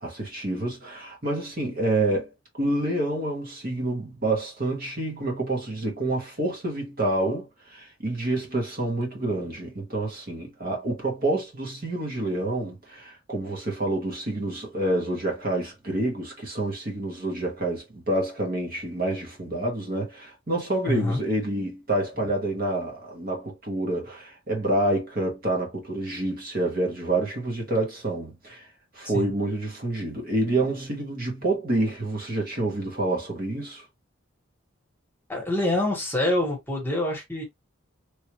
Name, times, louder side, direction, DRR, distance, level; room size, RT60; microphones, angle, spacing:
voice 1, 0.0-2.3 2.6-28.7 28.9-33.8, right 2 dB, 45° right, 1.2 m, -28 dB
voice 2, 20.9-21.2 29.1-29.2 35.3-37.4, left 1 dB, 10° left, 1.3 m, -25 dB
3.2 x 2.6 x 3.0 m
head